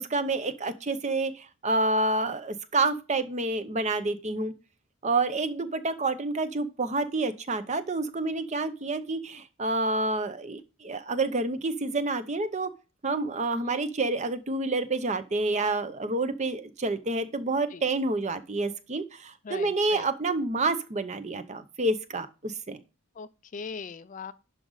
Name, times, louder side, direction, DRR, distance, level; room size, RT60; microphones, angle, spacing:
voice 1, 0.0-4.5 5.0-12.7 13.0-22.8, right 2 dB, 35° right, 0.7 m, -28 dB
voice 2, 19.4-20.1 23.2-24.3, left 5 dB, 35° left, 0.4 m, -40 dB
11.0 x 5.0 x 3.9 m
head